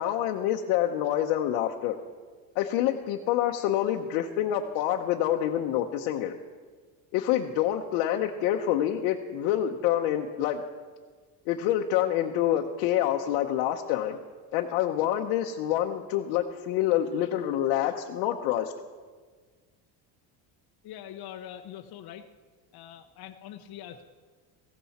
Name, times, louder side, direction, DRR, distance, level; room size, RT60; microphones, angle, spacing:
voice 1, 0.0-2.0 2.5-6.4 7.1-10.6 11.4-14.2 14.5-18.7, left 11 dB, 85° left, 1 dB, 1.0 m, -27 dB
voice 2, 20.8-22.3 22.7-24.0, left 10 dB, 50° left, 4 dB, 0.9 m, -43 dB
16.5 x 15.5 x 4.3 m, 1.5 s
supercardioid pair, 105°, 47 cm